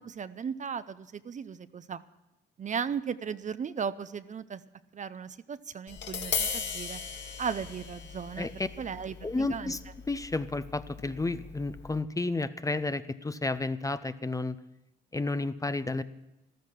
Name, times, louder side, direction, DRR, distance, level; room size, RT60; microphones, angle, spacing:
voice 1, 0.0-2.0 2.6-4.6 4.9-7.0 7.4-8.5 8.8-9.7, right 6 dB, 40° right, 14 dB, 0.6 m, -36 dB
Tap, 5.9-12.0, left 6 dB, 65° left, 1.9 m, -38 dB
voice 2, 8.4-8.7 9.2-9.8 10.1-14.6 15.1-16.0, left 3 dB, 15° left, 13 dB, 0.6 m, -31 dB
13.5 x 13.0 x 6.1 m, 0.95 s
cardioid pair, 90°, 20 cm